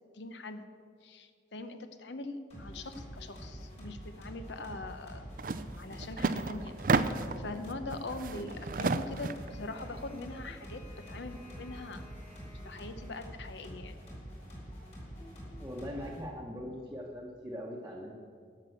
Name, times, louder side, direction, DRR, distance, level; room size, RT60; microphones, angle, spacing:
voice 1, 0.2-0.6 1.0-5.3 5.8-6.8 7.4-10.8 11.1-12.0 12.6-13.9, left 2 dB, 75° left, 9 dB, 0.8 m, -42 dB
sound 1, 2.5-16.2, equal, 35° left, 3.1 m, -46 dB
sound 2, 5.4-5.6 5.9-7.4 7.9-9.5, right 4 dB, 45° right, 0.4 m, -31 dB
voice 2, 15.6-18.1, equal, 15° right, -4 dB, 1.0 m, -41 dB
12.0 x 6.0 x 7.8 m, 2.2 s
head